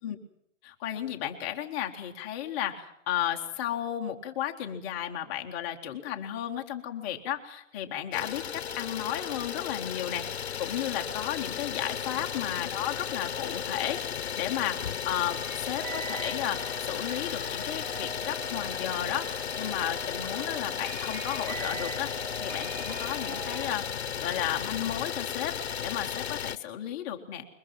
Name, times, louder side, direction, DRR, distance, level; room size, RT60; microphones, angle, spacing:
voice 1, 0.6-27.5, left 11 dB, 10° left, 3 dB, 0.8 m, -34 dB
Idling, 8.1-26.6, left 8 dB, 55° left, 0.8 m, -35 dB
sound 1, 15.4-23.8, right 5 dB, 25° right, 7.2 m, -42 dB
22.5 x 20.0 x 7.5 m, 0.76 s
hypercardioid pair, 160°, 38 cm